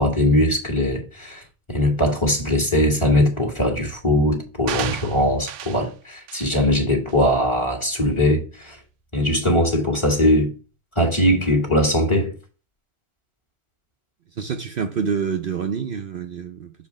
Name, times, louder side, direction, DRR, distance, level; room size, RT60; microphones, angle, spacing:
voice 1, 0.0-1.4 1.7-8.8 9.1-10.5 10.9-12.3, left 1 dB, 25° left, 1.6 m, -20 dB
sound 1, 4.7-5.9 6.3-6.6 7.1-7.2, right 10 dB, 85° right, 0.9 m, -32 dB
voice 2, 14.4-16.7, right 6 dB, 55° right, 0.7 m, -27 dB
6.7 x 3.3 x 4.7 m
omnidirectional pair, 1.2 m